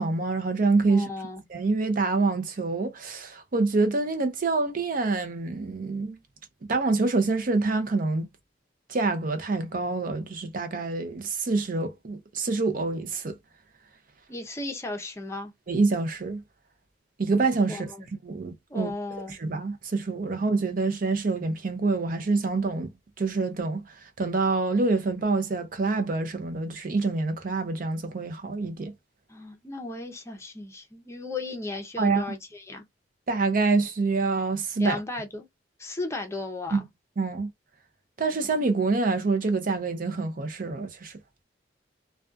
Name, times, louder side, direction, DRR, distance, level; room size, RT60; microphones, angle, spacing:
voice 1, 0.0-1.1 1.5-6.2 6.7-8.3 8.9-13.4 15.7-16.4 17.2-17.9 18.2-18.9 19.3-28.9 32.0-32.2 33.3-35.0 36.7-36.8 37.2-37.5 38.2-41.2, right 3 dB, 50° right, 0.5 m, -26 dB
voice 2, 0.9-1.4 14.3-15.5 17.7-18.1 18.7-19.4 29.3-32.8 34.8-35.5 35.8-36.9, left 2 dB, 15° left, 0.6 m, -35 dB
2.4 x 2.2 x 2.4 m
head